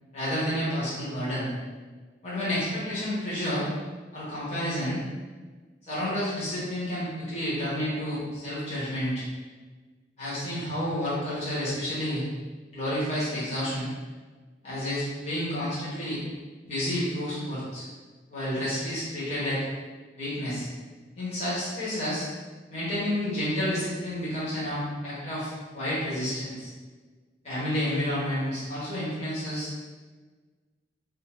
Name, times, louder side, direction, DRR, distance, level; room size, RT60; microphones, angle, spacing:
voice 1, 0.1-1.5 2.2-3.7 4.1-5.0 5.9-9.2 10.2-12.2 12.7-13.9 14.6-16.2 16.6-17.9 18.3-19.6 20.2-20.7 21.2-22.3 22.7-26.7 27.4-29.7, equal, 35° left, -10 dB, 1.0 m, -30 dB
2.5 x 2.4 x 3.1 m, 1.4 s
head